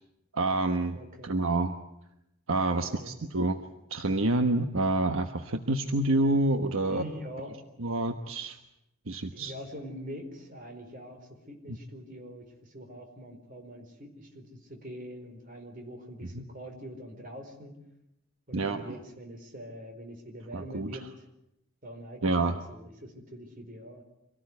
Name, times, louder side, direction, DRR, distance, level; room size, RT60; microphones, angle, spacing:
voice 1, 0.3-1.0 1.2-1.8 2.5-3.6 3.9-7.0 7.8-8.6 9.1-9.5 16.3-16.4 18.5-18.8 20.5-20.9 22.2-22.6, right 2 dB, 70° right, 7 dB, 1.2 m, -27 dB
voice 2, 0.9-1.3 2.8-3.2 6.8-7.6 9.3-17.8 18.5-21.1 21.8-24.0, equal, 40° right, 4 dB, 4.6 m, -44 dB
25.5 x 18.0 x 9.6 m, 0.85 s
head